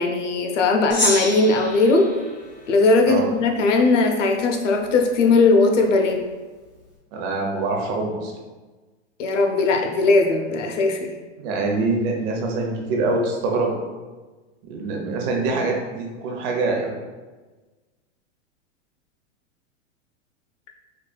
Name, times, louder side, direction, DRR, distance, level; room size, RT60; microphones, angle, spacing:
voice 1, 0.0-2.1 2.7-6.2 9.2-11.1, left 3 dB, 85° left, 4 dB, 0.7 m, -19 dB
Gong, 0.9-3.5, left 1 dB, 35° left, 1.3 m, -29 dB
voice 2, 7.1-8.3 11.4-13.8 14.7-16.9, right 3 dB, 50° right, 1 dB, 0.8 m, -24 dB
4.7 x 2.4 x 2.3 m, 1.3 s
hypercardioid pair, 130°, 36 cm